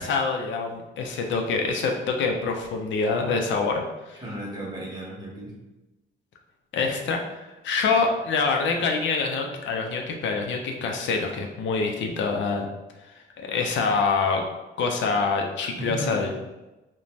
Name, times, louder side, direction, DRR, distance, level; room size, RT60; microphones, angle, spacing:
voice 1, 0.0-4.2 6.7-7.2 7.6-12.7 13.4-14.4 14.8-16.3, left 4 dB, 70° left, 2 dB, 0.4 m, -25 dB
voice 2, 4.1-5.5 15.8-16.3, right 1 dB, 20° right, -4 dB, 1.0 m, -34 dB
2.5 x 2.1 x 3.1 m, 1.0 s
cardioid pair, 90°, 20 cm